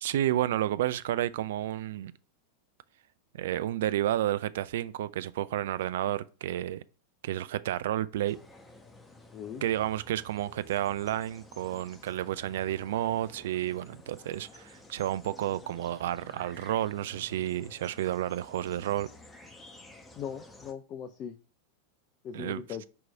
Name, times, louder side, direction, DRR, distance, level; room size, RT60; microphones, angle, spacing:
voice 1, 0.0-2.1 3.3-6.8 7.2-8.4 9.6-19.1 22.3-22.6, right 12 dB, 55° right, 0.4 m, -31 dB
sound 1, 8.3-20.7, left 2 dB, 10° left, 1.0 m, -53 dB
voice 2, 9.3-9.6 20.2-21.4 22.2-22.9, left 8 dB, 35° left, 0.5 m, -39 dB
6.1 x 4.7 x 4.7 m
figure-of-eight pair, 90°, 0 cm